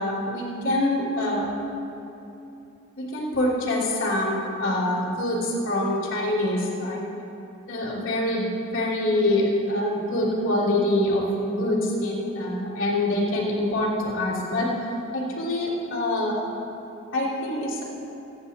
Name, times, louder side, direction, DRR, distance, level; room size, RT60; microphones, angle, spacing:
voice 1, 0.0-1.4 3.0-7.0 7.7-16.4 17.1-17.8, left 1 dB, 65° left, -10 dB, 3.0 m, -25 dB
23.5 x 10.0 x 2.9 m, 2.9 s
head